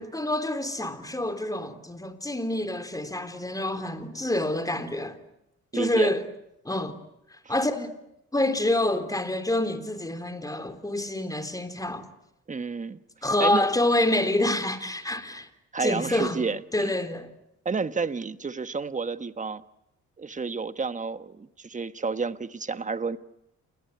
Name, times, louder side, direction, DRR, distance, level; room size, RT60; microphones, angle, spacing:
voice 1, 0.0-5.2 5.7-6.2 6.6-6.9 7.5-7.9 8.3-12.0 13.2-15.5 15.8-16.4 16.7-17.3, left 1 dB, 10° left, 3.6 m, -27 dB
voice 2, 5.7-6.1 12.5-13.0 13.4-13.6 15.7-16.9 17.6-19.6 20.2-23.2, right 4 dB, 25° right, 1.4 m, -30 dB
29.5 x 21.5 x 9.4 m
cardioid pair, 90°, 30 cm